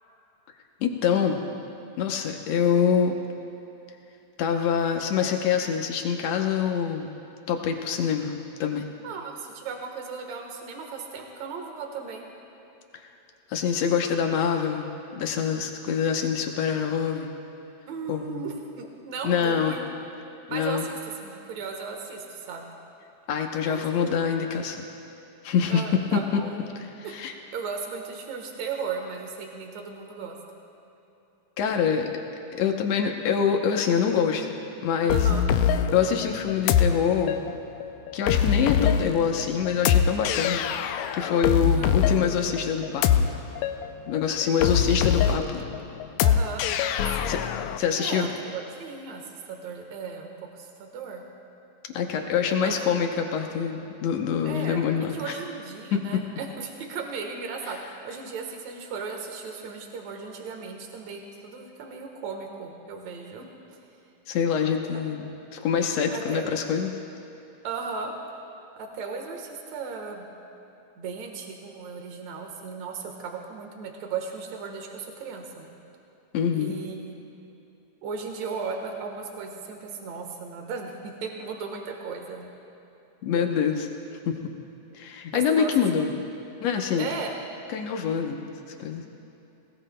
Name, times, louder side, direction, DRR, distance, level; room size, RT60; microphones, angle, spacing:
voice 1, 0.8-1.4 2.0-3.2 4.4-7.1 7.5-8.8 13.5-17.3 18.1-18.5 19.2-19.8 20.5-20.9 23.3-24.8 25.4-25.8 27.1-27.3 31.6-32.1 32.5-34.6 34.8-35.3 35.9-37.5 38.1-43.4 44.1-45.7 47.3-47.4 47.8-48.3 51.9-55.4 55.9-56.0 64.3-65.2 65.5-66.9 76.3-76.8 83.2-83.9 84.3-84.4 84.9-86.1 86.6-87.1 87.7-88.4 88.8-89.1, left 7 dB, 70° left, 3 dB, 1.7 m, -25 dB
voice 2, 9.0-12.3 17.9-19.9 20.5-22.7 23.6-24.3 25.7-26.6 27.0-27.2 27.5-30.4 35.1-35.5 41.7-42.0 44.6-45.5 46.2-46.6 47.1-47.4 48.0-51.2 52.6-52.7 54.4-63.5 64.9-65.0 66.1-66.7 67.6-68.1 68.8-70.3 71.0-75.7 76.5-77.1 78.0-82.5 85.3-86.0 87.0-87.4, right 5 dB, 60° right, 2 dB, 2.4 m, -36 dB
sound 1, 35.1-47.8, left 9 dB, 85° left, 1.6 m, -24 dB
20.5 x 18.0 x 2.2 m, 3.0 s
omnidirectional pair, 3.8 m